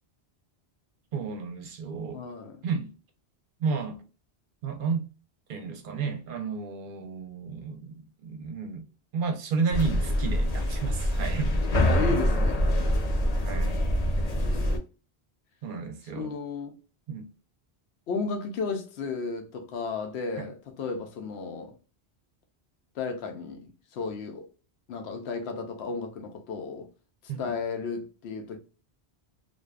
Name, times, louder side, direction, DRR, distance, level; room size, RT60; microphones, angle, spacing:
voice 1, 1.1-2.2 2.6-2.9 3.6-4.0 4.6-5.0 5.5-8.8 9.1-11.5 13.4-13.8 15.6-16.3 17.1-17.3 20.4-20.5 27.3-27.5, right 5 dB, 60° right, 0.7 m, -32 dB
voice 2, 2.1-2.6 11.8-12.6 14.0-14.6 16.1-16.8 18.1-21.8 22.9-24.5 24.9-26.9 27.4-28.6, left 4 dB, 75° left, 0.9 m, -34 dB
sound 1, 9.7-14.8, equal, 45° left, 0.6 m, -25 dB
2.5 x 2.2 x 2.3 m
omnidirectional pair, 1.1 m